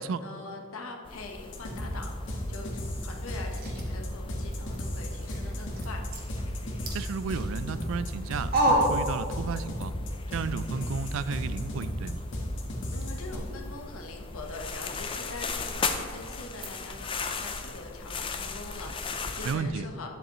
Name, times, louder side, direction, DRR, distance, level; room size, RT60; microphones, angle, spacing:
voice 1, 0.0-2.7 3.0-6.0 12.9-20.1, left 3 dB, 75° left, 3 dB, 1.0 m, -43 dB
sound 1, 1.0-19.6, left 4 dB, 25° left, 0.4 m, -39 dB
sound 2, 1.5-13.4, equal, 55° left, 1.5 m, -34 dB
sound 3, 2.6-9.8 10.1-17.3, right 1 dB, 45° right, 1.4 m, -35 dB
voice 2, 6.9-9.9 10.3-12.2 19.4-19.8, right 5 dB, 65° right, 14 dB, 0.3 m, -33 dB
10.0 x 7.8 x 3.0 m, 2.3 s
head